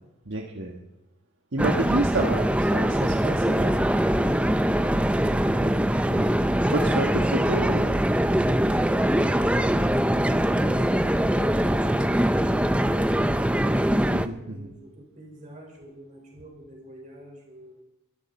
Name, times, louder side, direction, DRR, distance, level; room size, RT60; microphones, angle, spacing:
voice 1, 0.2-0.8 1.5-3.9 5.6-5.7 6.1-6.3 6.7-7.9 14.1-14.7, right 2 dB, 60° right, 2 dB, 1.3 m, -30 dB
sound 1, 1.6-14.3, right 1 dB, 5° right, 0.5 m, -22 dB
voice 2, 13.6-17.8, right 1 dB, 35° right, 0 dB, 5.0 m, -45 dB
22.5 x 13.0 x 4.3 m, 0.96 s
head